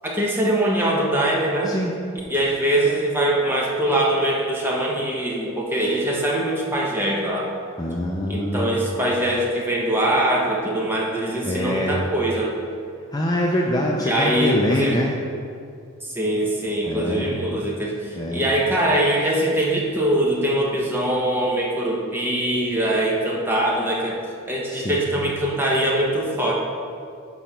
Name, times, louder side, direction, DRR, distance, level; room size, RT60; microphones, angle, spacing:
voice 1, 0.0-1.7 2.3-7.5 8.3-12.5 14.0-15.0 16.0-24.2 24.5-26.5, right 1 dB, 10° right, -3 dB, 1.0 m, -22 dB
voice 2, 7.8-9.0 11.4-11.9 13.1-15.1 16.9-17.3 18.1-18.5 24.7-25.0, left 1 dB, 20° left, -1 dB, 0.5 m, -24 dB
7.1 x 4.4 x 5.5 m, 2.3 s
head